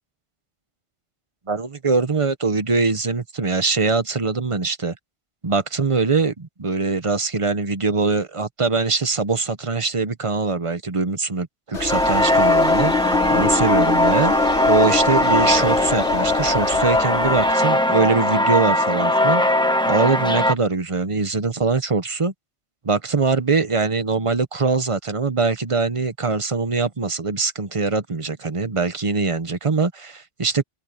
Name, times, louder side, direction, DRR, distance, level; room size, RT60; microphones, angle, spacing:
voice 1, 1.5-4.9 5.4-12.9 13.3-19.4 19.9-22.3 22.8-30.6, right 4 dB, 30° right, 0.9 m, -22 dB
sound 1, 11.7-17.5, left 5 dB, 85° left, 3.2 m, -25 dB
sound 2, 11.9-20.5, left 1 dB, 5° left, 1.0 m, -19 dB
open air
omnidirectional pair, 1.2 m